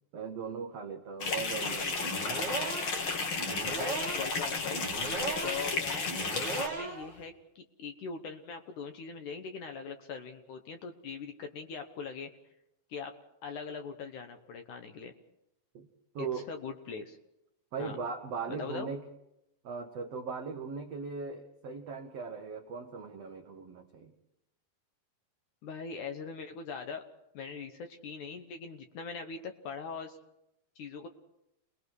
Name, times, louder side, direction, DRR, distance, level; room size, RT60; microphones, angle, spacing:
voice 1, 0.1-2.1 15.7-15.9 16.1-16.5 17.7-19.0 19.6-24.1, right 5 dB, 90° right, 4 dB, 1.4 m, -39 dB
sound 1, 1.2-6.7, left 4 dB, 45° left, 1.9 m, -33 dB
sound 2, 1.9-7.2, right 3 dB, 30° right, 2.7 m, -38 dB
voice 2, 3.4-4.8 5.4-6.1 6.5-12.3 12.9-13.1 13.4-15.1 16.2-17.2 17.8-18.0 18.5-18.9 25.6-27.0 27.3-30.2 30.8-31.1, left 5 dB, 65° left, 6 dB, 2.1 m, -41 dB
29.0 x 20.5 x 4.8 m, 0.86 s
omnidirectional pair, 4.7 m